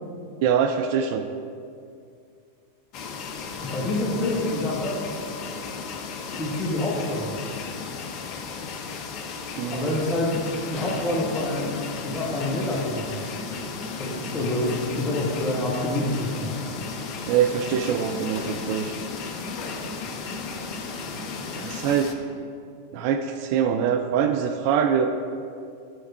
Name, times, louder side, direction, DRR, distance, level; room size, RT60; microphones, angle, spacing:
voice 1, 0.4-1.3 9.6-10.0 17.3-19.0 21.6-22.1 22.9-25.1, right 8 dB, 45° right, 6 dB, 0.3 m, -24 dB
sound 1, 2.9-22.1, left 5 dB, 40° left, 0.6 m, -35 dB
voice 2, 3.6-5.0 6.2-7.4 9.7-10.3 10.7-13.2 14.0-16.5, left 1 dB, 20° left, -6 dB, 1.0 m, -27 dB
sound 2, 10.0-21.9, left 1 dB, 30° right, 1.5 m, -39 dB
7.6 x 3.5 x 4.3 m, 2.4 s
figure-of-eight pair, 90°, 0 cm